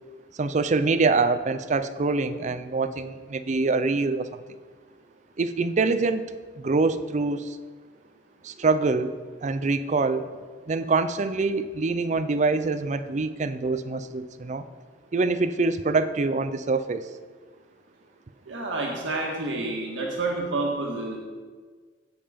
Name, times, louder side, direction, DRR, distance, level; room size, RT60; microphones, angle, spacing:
voice 1, 0.4-4.4 5.4-6.3 6.6-7.6 8.4-9.1 9.4-10.3 10.7-14.6 15.1-17.0, right 3 dB, 40° right, 11 dB, 0.5 m, -25 dB
voice 2, 18.5-21.2, right 2 dB, 85° right, -2 dB, 1.6 m, -29 dB
15.5 x 5.6 x 5.1 m, 1.5 s
head